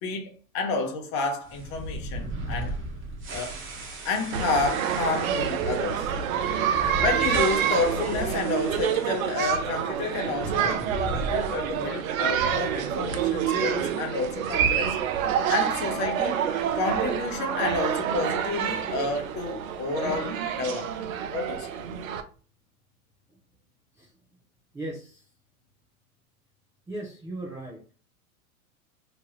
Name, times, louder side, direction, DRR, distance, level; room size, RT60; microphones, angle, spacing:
voice 1, 0.0-2.8 3.3-3.6 4.0-6.1 7.0-15.0 15.5-16.5 16.7-21.9, left 3 dB, 40° left, 0.9 m, -30 dB
sound 1, 1.4-9.6 9.9-10.0 10.6-12.0, right 1 dB, 25° right, 1.0 m, -37 dB
sound 2, 4.3-22.2, right 8 dB, 70° right, 0.6 m, -27 dB
voice 2, 24.7-25.2 26.9-27.8, right 1 dB, 5° right, 0.4 m, -37 dB
3.0 x 2.2 x 3.0 m
hypercardioid pair, 105°, 43 cm